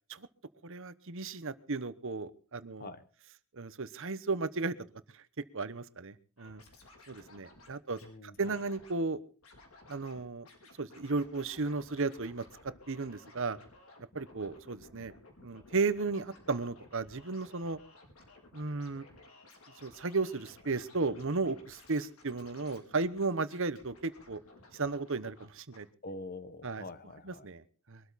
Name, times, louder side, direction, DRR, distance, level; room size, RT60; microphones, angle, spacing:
voice 1, 0.6-2.9 3.5-4.7 5.1-5.2 5.5-6.6 7.1-8.0 8.4-9.2 9.9-10.5 10.8-12.4 12.9-13.6 14.1-15.1 15.4-17.8 18.5-19.1 19.8-24.4 24.7-25.9 26.6-26.8 27.2-28.0, right 3 dB, 60° right, 14 dB, 1.1 m, -34 dB
Scratching (performance technique), 6.4-8.1 8.4-9.0 9.4-10.2 10.4-25.5 25.7-25.8, left 2 dB, 70° left, 4.9 m, -57 dB
voice 2, 8.0-8.5 26.0-27.5, left 2 dB, 40° left, 12 dB, 1.4 m, -45 dB
23.0 x 13.0 x 4.2 m, 0.38 s
head